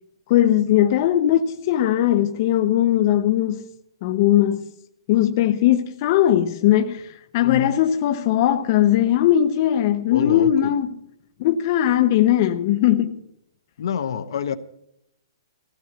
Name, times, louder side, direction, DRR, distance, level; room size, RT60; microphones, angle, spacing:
voice 1, 0.3-3.6 4.0-4.6 5.1-7.1 7.3-10.9 11.4-13.2, left 12 dB, 40° left, 0.8 m, -19 dB
voice 2, 7.4-7.7 10.1-10.7 13.8-14.6, left 8 dB, 70° left, 1.1 m, -27 dB
18.5 x 16.0 x 3.0 m
hypercardioid pair, 150°, 3 cm